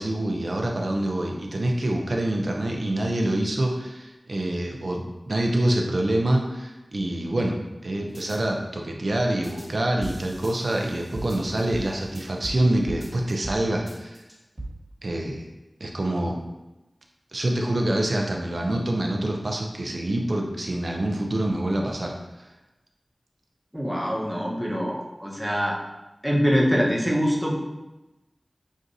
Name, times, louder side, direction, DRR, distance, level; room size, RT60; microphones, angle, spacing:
voice 1, 0.0-7.6 7.8-14.2 15.0-15.4 15.8-16.4 17.3-22.5, right 1 dB, 70° right, 1 dB, 0.6 m, -26 dB
sound 1, 8.1-8.4 9.4-9.7 10.0-12.6 12.9-13.6 13.9-14.7, right 2 dB, 40° right, 1.5 m, -38 dB
voice 2, 23.7-25.8 26.2-27.6, equal, 5° right, -3 dB, 1.0 m, -24 dB
6.1 x 2.6 x 2.6 m, 1.0 s
wide cardioid pair, 45°, 0 cm